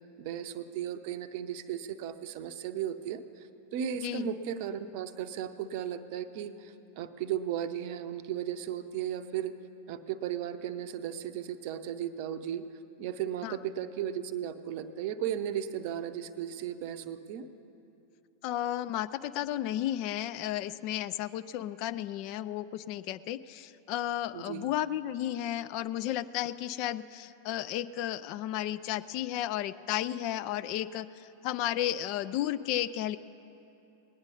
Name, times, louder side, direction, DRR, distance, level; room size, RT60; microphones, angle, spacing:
voice 1, 0.2-3.2 3.7-9.5 9.9-12.6 13.0-17.5 24.3-24.7, right 9 dB, 45° right, 11 dB, 0.6 m, -35 dB
voice 2, 18.4-33.2, left 12 dB, 45° left, 14 dB, 0.3 m, -33 dB
19.5 x 9.6 x 5.4 m, 2.8 s
figure-of-eight pair, 90°, 0 cm